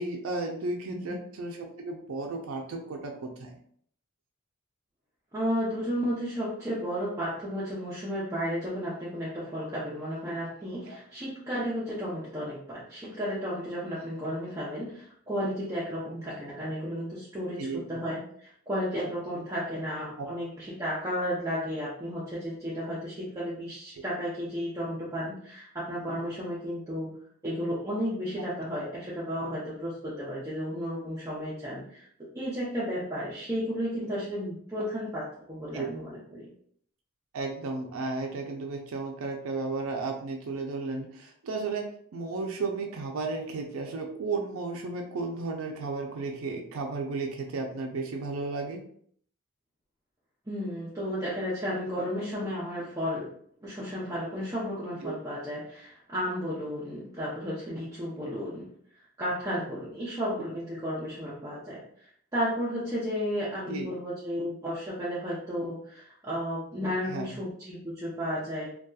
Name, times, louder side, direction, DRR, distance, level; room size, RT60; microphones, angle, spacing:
voice 1, 0.0-3.6 10.9-11.0 17.6-17.8 20.2-20.3 35.7-35.9 37.3-48.8 55.0-55.1 63.7-63.9 67.1-67.3, right 3 dB, 70° right, 2 dB, 0.4 m, -34 dB
voice 2, 5.3-27.1 27.4-32.1 32.3-36.5 50.5-53.3 53.6-58.7 59.2-68.7, equal, 15° right, -8 dB, 0.5 m, -33 dB
2.7 x 2.3 x 2.2 m, 0.62 s
head